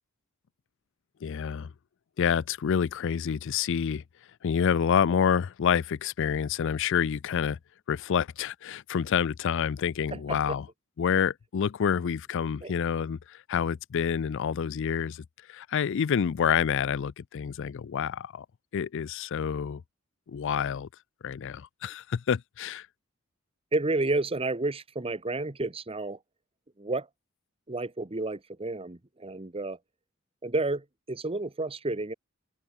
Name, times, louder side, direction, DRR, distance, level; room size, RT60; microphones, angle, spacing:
voice 1, 1.2-1.7 2.2-4.0 4.4-7.6 7.9-10.7 11.0-18.5 18.7-19.8 20.3-20.9 21.2-22.9, left 7 dB, 60° left, 0.4 m, -28 dB
voice 2, 10.1-10.6 12.6-12.7 23.7-26.2 26.8-27.1 27.7-29.8 30.4-32.1, right 2 dB, 25° right, 1.1 m, -31 dB
open air
head